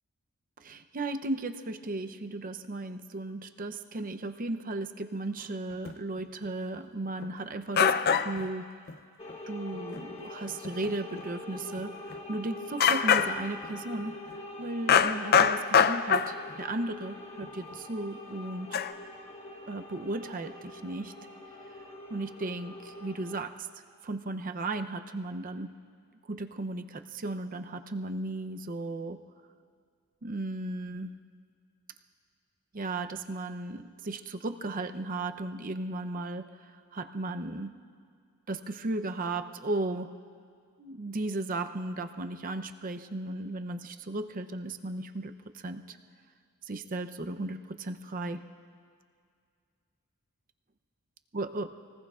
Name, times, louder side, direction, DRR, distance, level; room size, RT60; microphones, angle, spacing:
voice 1, 0.6-8.7 9.5-14.2 14.6-18.8 19.7-21.1 22.1-23.7 24.0-25.7 26.3-29.2 30.2-31.1 32.7-37.7 38.5-40.1 40.8-46.0 46.6-48.4 51.3-51.7, right 2 dB, 40° right, 8 dB, 0.6 m, -35 dB
sound 1, 5.9-6.0 7.2-7.3 7.8-8.5 8.9-9.0 9.3-9.4 9.7-10.0 10.6-10.9 11.2-11.3 11.8-11.9 12.1-12.2 12.8-13.7 14.9-16.5 17.4-17.5 18.7-18.9, left 7 dB, 45° left, 0.5 m, -24 dB
sound 2, 9.2-23.4, left 2 dB, 30° left, 1.2 m, -44 dB
27.5 x 19.0 x 2.4 m, 2.2 s
head